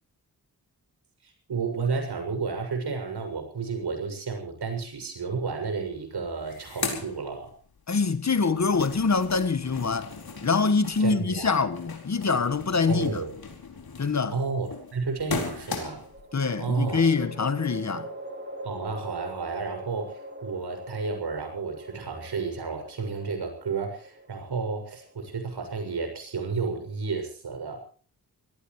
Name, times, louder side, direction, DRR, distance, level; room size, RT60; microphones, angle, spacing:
voice 1, 1.2-7.5 11.0-11.7 12.9-13.3 14.3-16.0 16.6-17.0 18.6-20.1 20.4-27.8, right 4 dB, 80° right, 6.7 m, -31 dB
sound 1, 5.8-5.9 6.2-7.9 8.3-16.2, left 4 dB, 65° left, 4.5 m, -38 dB
voice 2, 7.9-10.1 10.4-13.2 14.0-14.4 16.3-18.1, left 4 dB, 45° left, 1.4 m, -24 dB
sound 2, 13.4-13.7 16.0-27.3, right 1 dB, 30° right, 3.1 m, -43 dB
25.0 x 17.5 x 3.2 m
wide cardioid pair, 160°, 39 cm